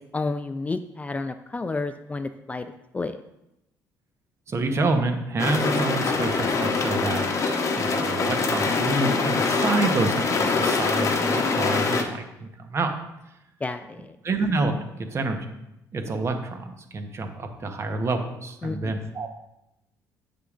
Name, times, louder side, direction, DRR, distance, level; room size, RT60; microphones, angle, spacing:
voice 1, 0.1-2.7 2.9-3.2 13.6-14.1 18.6-19.0, left 3 dB, 20° left, 10 dB, 0.4 m, -30 dB
voice 2, 4.5-12.9 14.2-14.9 15.1-15.4 15.9-19.3, right 3 dB, 40° right, 5 dB, 1.0 m, -28 dB
sound 1, 5.4-12.0, left 4 dB, 45° left, 1.0 m, -24 dB
8.0 x 6.6 x 2.5 m, 0.87 s
supercardioid pair, 85°, 7 cm